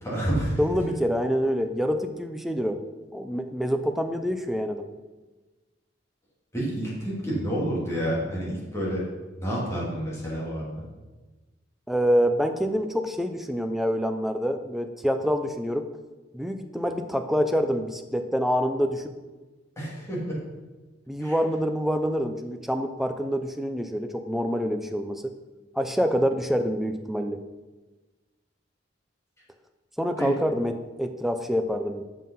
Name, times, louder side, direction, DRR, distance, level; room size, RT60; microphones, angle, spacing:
voice 1, 0.0-0.6 6.5-9.1 9.4-10.9 19.8-20.4 21.2-21.4 30.2-30.3, right 1 dB, 15° left, -6 dB, 2.7 m, -29 dB
voice 2, 0.6-2.8 3.1-4.9 11.9-15.9 16.3-19.1 21.1-25.3 25.8-27.4 30.0-32.0, equal, ahead, 6 dB, 0.5 m, -26 dB
7.5 x 5.6 x 5.6 m, 1.2 s
head